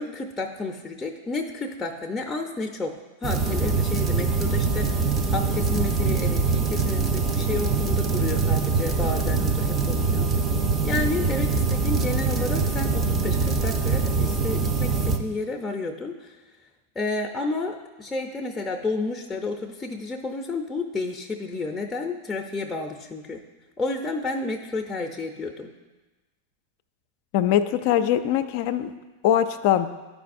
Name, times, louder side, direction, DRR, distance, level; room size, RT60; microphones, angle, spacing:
voice 1, 0.0-10.3 10.8-16.4 17.0-23.4 23.8-25.7, left 3 dB, 15° left, 0 dB, 0.6 m, -31 dB
sound 1, 3.2-15.2, right 4 dB, 25° right, 0.7 m, -23 dB
voice 2, 27.3-28.9 29.2-29.9, left 11 dB, 55° left, 9 dB, 0.4 m, -22 dB
11.5 x 4.8 x 2.6 m, 1.2 s
hypercardioid pair, 100°, 0 cm